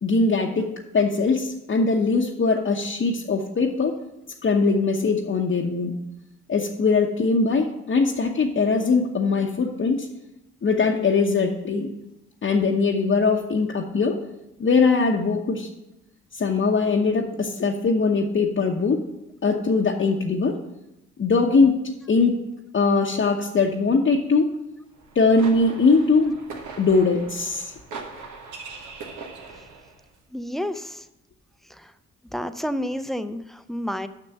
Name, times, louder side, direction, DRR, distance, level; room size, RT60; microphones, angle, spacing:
voice 1, 0.0-4.0 4.4-5.9 6.5-10.1 10.6-11.9 12.4-14.2 14.6-15.7 16.3-19.0 19.4-20.6 21.2-21.8 22.1-22.4 22.7-24.5 25.1-26.4 26.8-27.7, left 4 dB, 40° left, -1 dB, 1.0 m, -21 dB
sound 1, 25.0-30.0, right 4 dB, 75° right, 1.4 m, -40 dB
voice 2, 30.3-31.1 31.7-31.9 32.3-34.1, equal, ahead, 11 dB, 0.6 m, -30 dB
6.6 x 6.0 x 7.1 m, 0.89 s
supercardioid pair, 55°, 31 cm